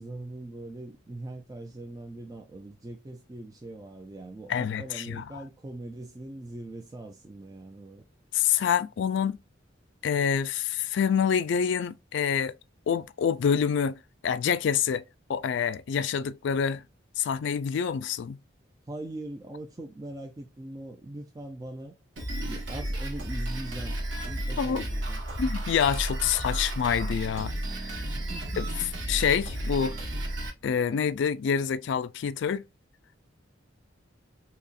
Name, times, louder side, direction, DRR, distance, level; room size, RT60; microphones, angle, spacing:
voice 1, 0.0-8.0 18.9-21.9 22.4-25.5 26.2-26.5 28.1-28.7, right 2 dB, 20° right, 0.4 m, -41 dB
voice 2, 4.5-5.2 8.3-9.4 10.0-12.6 12.9-15.0 15.3-16.8 17.2-18.4 24.6-24.9 25.4-27.5 27.8-28.0 28.6-28.7 29.1-30.0 30.6-32.6, left 7 dB, 60° left, 0.3 m, -27 dB
Drum kit, 22.2-30.5, right 1 dB, 65° right, 1.3 m, -33 dB
4.1 x 2.8 x 2.4 m
head